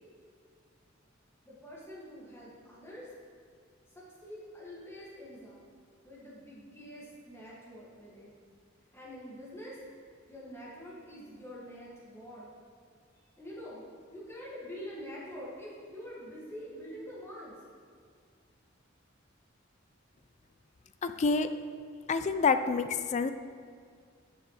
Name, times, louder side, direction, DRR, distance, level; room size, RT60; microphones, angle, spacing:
voice 1, 1.4-3.1 4.2-5.6 6.0-8.3 8.9-9.8 10.3-12.5 13.4-13.8 14.1-17.6, equal, 15° left, -7 dB, 2.0 m, -45 dB
voice 2, 21.0-21.5 22.1-23.3, left 4 dB, 35° left, 10 dB, 0.3 m, -27 dB
10.5 x 6.7 x 3.2 m, 2.1 s
head